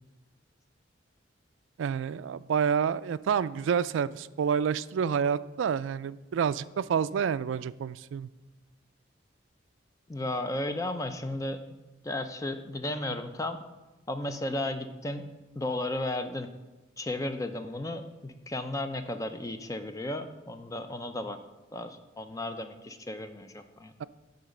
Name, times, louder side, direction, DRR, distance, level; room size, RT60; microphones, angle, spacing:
voice 1, 1.8-8.3, right 7 dB, 80° right, 16 dB, 0.3 m, -28 dB
voice 2, 10.1-11.6 12.0-13.6 14.1-15.3 15.6-16.5 17.0-21.4 21.7-23.9, left 1 dB, 15° left, 8 dB, 0.5 m, -34 dB
10.5 x 4.0 x 6.5 m, 1.1 s
head